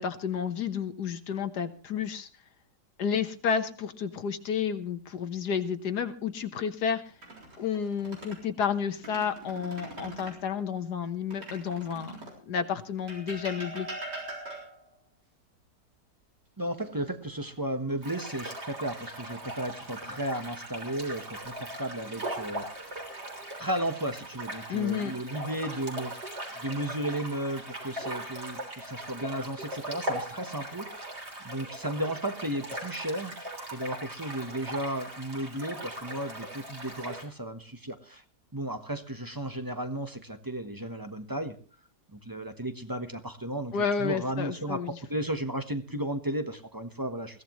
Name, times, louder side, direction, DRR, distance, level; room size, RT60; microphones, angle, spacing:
voice 1, 0.0-2.3 3.0-7.1 7.6-12.2 12.5-13.9 24.7-25.1 43.7-45.0, left 7 dB, 70° left, 8 dB, 1.6 m, -31 dB
sound 1, 7.1-8.4 8.9-10.4 11.3-12.4 13.1-14.9 16.8-17.5 17.9-18.1 21.0-21.6 22.4-23.0, right 1 dB, 85° right, 4.6 m, -43 dB
voice 2, 16.6-22.9 23.6-31.2 31.4-33.3 33.7-38.2 38.5-41.5 42.1-44.8 45.1-47.4, right 1 dB, 15° right, 8 dB, 0.9 m, -34 dB
sound 2, 18.0-37.3, right 1 dB, 40° right, 3.9 m, -39 dB
21.5 x 16.0 x 3.1 m, 0.37 s
omnidirectional pair, 1.8 m